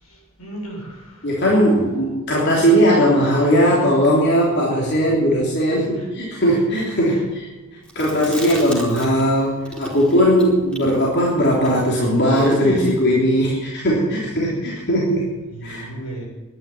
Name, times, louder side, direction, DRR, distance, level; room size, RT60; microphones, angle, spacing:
voice 1, 0.0-1.9 4.7-5.0 5.9-6.1 7.1-7.3 8.4-8.8 14.8-15.0 15.5-16.2, right 2 dB, 85° left, -2 dB, 6.9 m, -37 dB
voice 2, 1.2-7.5 7.9-15.3 15.6-15.9, equal, 50° left, -4 dB, 3.3 m, -18 dB
Chewing mastication, 7.9-9.4 9.6-13.0, equal, 5° left, 3.5 m, -30 dB
11.5 x 11.0 x 9.5 m, 1.2 s
head